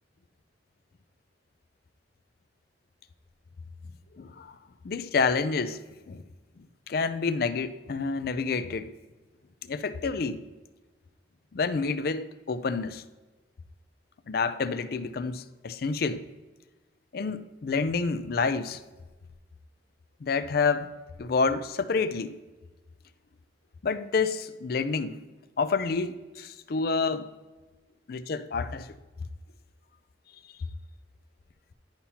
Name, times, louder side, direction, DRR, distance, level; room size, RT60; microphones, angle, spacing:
voice 1, 4.2-4.5 4.8-5.8 6.1-6.2 6.6-8.9 9.6-10.4 11.5-13.0 14.3-16.2 17.1-18.8 20.2-20.9 21.2-22.4 23.8-25.2 25.6-27.3 28.1-29.0, left 4 dB, 55° left, 0.4 m, -28 dB
10.5 x 5.6 x 2.8 m
head